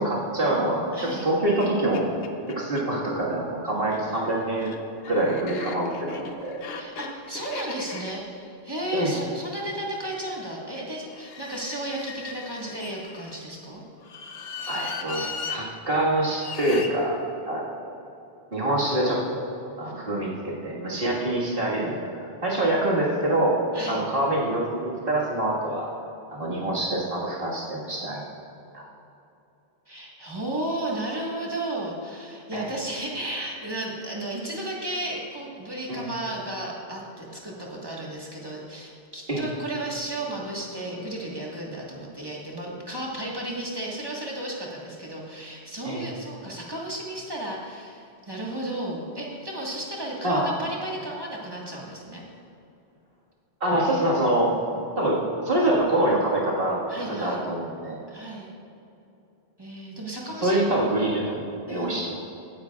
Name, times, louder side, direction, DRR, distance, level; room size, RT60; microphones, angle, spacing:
voice 1, 0.0-2.0 2.6-4.7 5.1-6.6 8.9-9.1 14.7-17.2 17.5-17.7 18.5-19.5 19.8-21.9 22.4-23.6 23.9-25.9 26.3-28.2 28.7-28.8 32.5-32.6 35.9-36.1 39.3-39.5 45.8-46.1 50.2-50.5 53.6-54.5 55.0-55.2 55.4-56.8 57.2-58.0 60.4-61.4 61.7-62.1, right 1 dB, 65° right, -5 dB, 2.0 m, -25 dB
voice 2, 0.9-1.3 6.7-13.8 23.7-24.0 29.9-52.2 54.6-54.9 56.9-57.4 58.1-58.5 59.6-60.6 61.7-62.0, right 1 dB, 25° right, -3 dB, 1.5 m, -34 dB
sound 1, 1.2-1.3 1.6-1.7 1.9-2.9 3.8-9.9 11.1-13.4 14.0-15.6 16.4-16.9, left 5 dB, 70° left, 1.0 m, -38 dB
16.0 x 9.7 x 2.4 m, 2.8 s
omnidirectional pair, 1.0 m